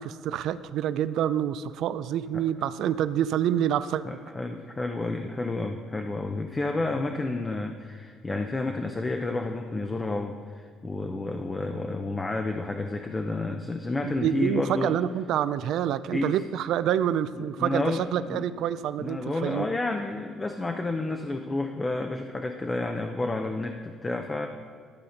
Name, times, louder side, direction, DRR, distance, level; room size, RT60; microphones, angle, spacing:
voice 1, 0.0-4.0 14.0-19.8, right 10 dB, 65° right, 14 dB, 0.4 m, -27 dB
voice 2, 4.0-15.0 16.1-16.3 17.3-18.5 19.0-24.5, left 2 dB, 15° left, 5 dB, 0.5 m, -30 dB
12.0 x 4.1 x 6.5 m, 2.1 s
cardioid pair, 130°, 0 cm